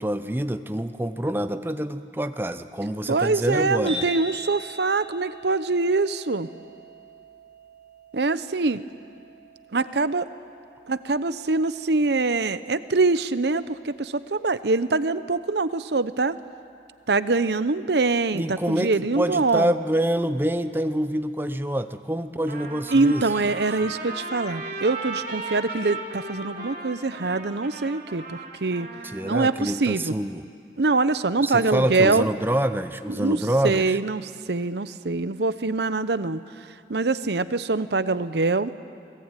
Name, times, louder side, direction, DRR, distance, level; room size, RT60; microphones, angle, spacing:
voice 1, 0.0-4.1 8.7-8.8 18.3-23.3 29.0-30.4 31.4-34.0, right 1 dB, 10° right, 10 dB, 0.7 m, -26 dB
voice 2, 3.1-6.5 8.1-8.8 9.7-10.3 10.9-16.4 17.1-19.7 22.9-28.9 29.2-30.1 30.8-32.3 33.1-33.4 33.6-36.4 36.9-38.7, right 3 dB, 75° right, 14 dB, 0.8 m, -24 dB
sound 1, 3.9-20.1, equal, 35° left, 6.9 m, -45 dB
Trumpet, 22.5-29.5, right 3 dB, 45° right, 4.0 m, -36 dB
28.0 x 19.5 x 9.1 m, 2.4 s
head